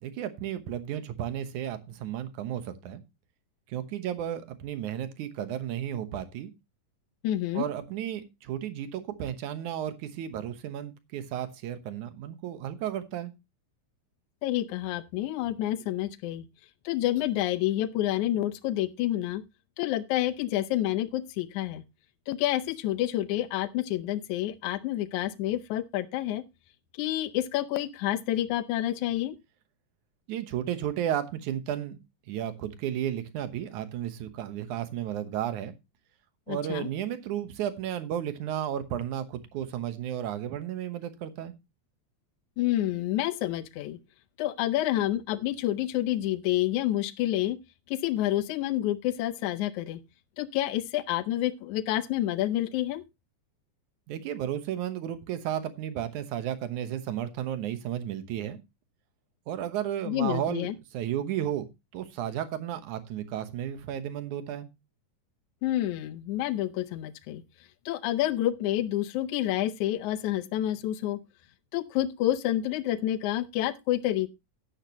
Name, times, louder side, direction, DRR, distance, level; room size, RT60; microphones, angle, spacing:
voice 1, 0.0-3.0 3.7-6.5 7.5-13.3 30.3-32.0 32.3-35.7 36.5-41.5 54.1-58.6 59.5-61.7 61.9-64.7, right 10 dB, 85° right, 2.7 m, -33 dB
voice 2, 7.2-7.6 14.4-16.5 16.8-19.4 19.8-21.8 22.3-26.4 26.9-29.4 36.5-36.9 42.6-44.0 44.4-47.6 47.9-50.0 50.4-53.0 60.1-60.8 65.6-67.4 67.9-71.2 71.7-74.3, left 13 dB, 80° left, 2.2 m, -28 dB
12.5 x 10.0 x 2.9 m
omnidirectional pair, 3.4 m